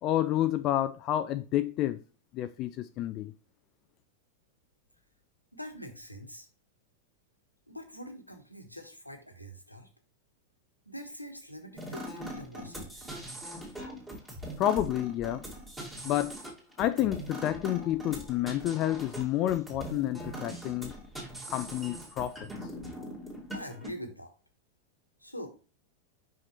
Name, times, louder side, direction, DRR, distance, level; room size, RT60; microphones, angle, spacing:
voice 1, 0.0-2.0 2.3-3.3 14.6-15.4 16.0-16.4 16.8-20.9 21.5-22.4, left 13 dB, 35° left, 0.3 m, -29 dB
voice 2, 5.5-6.5 7.7-9.9 10.9-13.1 23.5-24.3 25.2-25.5, equal, 90° left, 1.3 m, -44 dB
sound 1, 11.8-23.9, equal, 10° right, 2.3 m, -41 dB
5.8 x 5.8 x 3.0 m
figure-of-eight pair, 90°, 0 cm